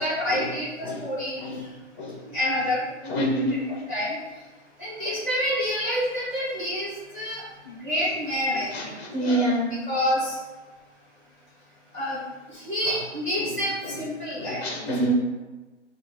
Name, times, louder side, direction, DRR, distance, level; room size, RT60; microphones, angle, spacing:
voice 1, 0.0-1.7 2.3-3.3 3.9-4.1 4.8-8.9 9.2-9.5 9.9-10.4 11.9-12.2 12.5-14.6, equal, 15° right, -8 dB, 1.7 m, -28 dB
voice 2, 3.1-3.8 5.0-5.1 8.7-9.8 12.9-13.0 13.4-13.5 13.8-14.0 14.4-15.1, right 1 dB, 10° left, 1 dB, 0.6 m, -27 dB
7.8 x 2.8 x 4.5 m, 1.2 s
figure-of-eight pair, 145°, 37 cm